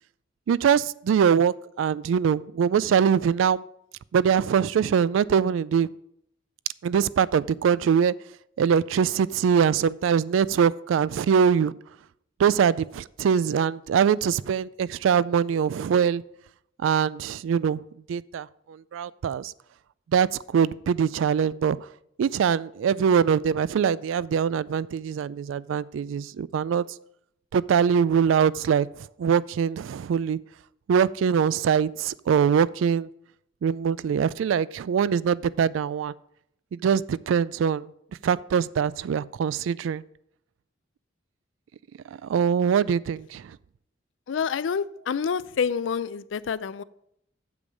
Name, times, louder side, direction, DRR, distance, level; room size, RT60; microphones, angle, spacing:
voice 1, 0.5-3.6 4.1-5.9 6.8-8.1 8.6-11.7 12.4-16.2 16.8-17.8 18.1-19.5 20.1-21.9 22.2-26.8 27.5-28.9 29.2-30.4 30.9-33.1 33.6-36.1 36.7-37.9 38.2-40.0 42.1-43.6, right 7 dB, 80° right, 20 dB, 0.3 m, -23 dB
voice 2, 44.3-46.8, left 6 dB, 70° left, 18 dB, 0.4 m, -28 dB
8.3 x 7.0 x 5.0 m, 0.75 s
head